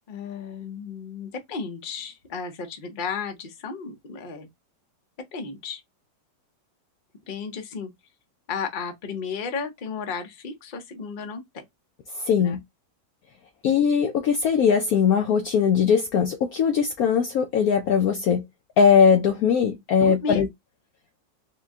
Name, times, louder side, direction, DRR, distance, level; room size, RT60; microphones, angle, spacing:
voice 1, 0.1-4.5 5.3-5.8 7.3-7.9 8.5-11.6 12.4-12.6 20.0-20.4, left 5 dB, 45° left, 0.6 m, -33 dB
voice 2, 12.1-12.6 13.6-18.4 18.8-20.5, left 7 dB, 70° left, 0.9 m, -20 dB
4.4 x 2.2 x 3.5 m
omnidirectional pair, 2.0 m